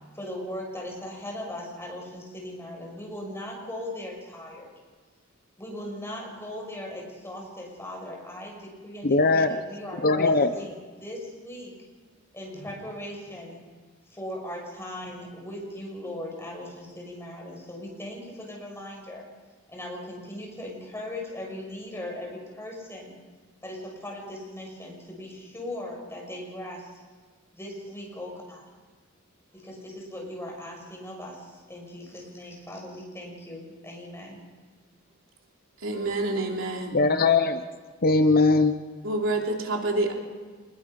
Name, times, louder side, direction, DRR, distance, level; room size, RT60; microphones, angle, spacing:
voice 1, 0.1-4.7 5.6-11.7 12.3-13.6 14.1-19.3 19.7-23.1 23.6-26.9 27.5-28.6 29.5-34.5, left 1 dB, 10° left, -1 dB, 6.6 m, -39 dB
voice 2, 9.0-9.5 10.0-10.5 36.9-37.6 38.0-38.7, left 3 dB, 45° left, 9 dB, 0.9 m, -20 dB
voice 3, 35.8-37.0 39.0-40.1, right 2 dB, 70° right, 1 dB, 3.4 m, -27 dB
27.0 x 21.0 x 5.4 m, 1.5 s
head